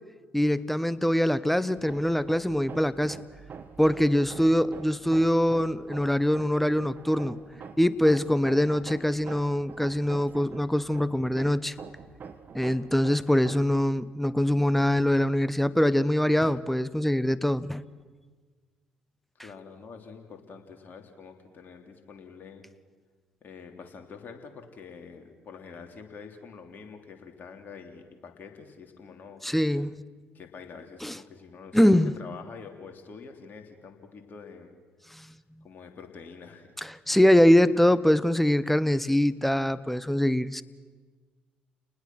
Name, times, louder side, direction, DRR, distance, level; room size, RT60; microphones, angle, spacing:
voice 1, 0.3-3.2 3.8-7.4 7.8-11.7 12.5-17.8 29.4-30.0 31.0-31.2 31.7-32.1 35.1-35.3 36.8-40.6, left 1 dB, 5° left, 17 dB, 0.9 m, -23 dB
Hammer, 1.8-13.8, right 6 dB, 45° right, 1.7 m, -45 dB
voice 2, 19.4-22.7 23.4-29.6 30.3-34.7 35.6-36.7, left 5 dB, 45° left, 4 dB, 3.1 m, -46 dB
29.5 x 20.0 x 6.1 m, 1.5 s
hypercardioid pair, 50°, 4 cm